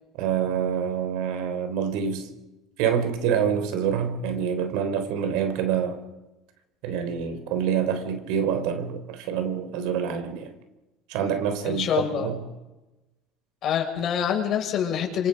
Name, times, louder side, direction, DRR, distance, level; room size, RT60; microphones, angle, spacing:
voice 1, 0.2-2.3 2.8-6.0 6.8-10.5 11.1-12.4, right 8 dB, 80° right, 3.7 m, -26 dB
voice 2, 11.6-12.3 13.6-15.3, left 8 dB, 50° left, 6.5 m, -26 dB
28.5 x 25.0 x 5.3 m
cardioid pair, 125°, 0 cm